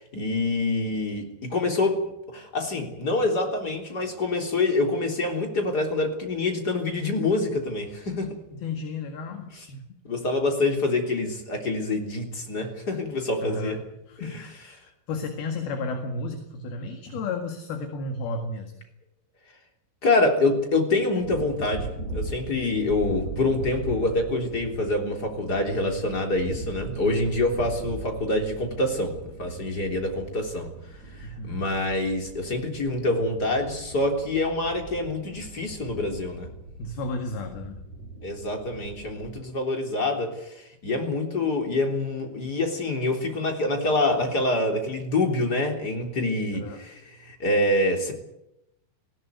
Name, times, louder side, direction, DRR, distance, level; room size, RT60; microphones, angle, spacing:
voice 1, 0.0-2.0 2.3-8.3 9.6-9.7 10.0-13.8 14.2-14.4 20.0-29.1 29.4-30.7 31.4-36.5 38.2-48.1, left 2 dB, 25° left, 3 dB, 3.4 m, -26 dB
voice 2, 8.5-9.8 13.4-13.8 14.1-18.7 27.6-27.8 31.2-31.7 36.8-37.8 46.5-46.8, left 3 dB, 60° left, 5 dB, 3.5 m, -33 dB
sound 1, 21.2-39.4, right 2 dB, 35° right, 4.1 m, -40 dB
19.5 x 17.0 x 9.4 m, 0.83 s
omnidirectional pair, 5.4 m